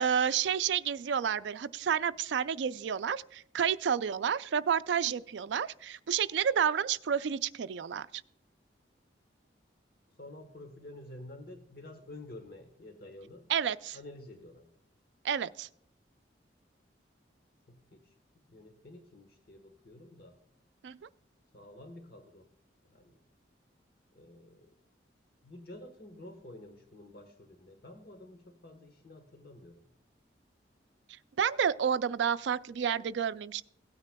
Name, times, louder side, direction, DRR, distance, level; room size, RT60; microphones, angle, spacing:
voice 1, 0.0-8.2 13.5-14.0 15.2-15.7 20.8-21.0 31.4-33.6, right 8 dB, 75° right, 15 dB, 0.4 m, -30 dB
voice 2, 10.2-13.4 13.9-14.7 17.7-18.1 18.5-20.3 21.5-22.5 22.8-23.2 24.1-24.7 25.4-29.8, left 1 dB, 55° left, 5 dB, 1.2 m, -50 dB
17.0 x 9.4 x 2.2 m, 0.72 s
head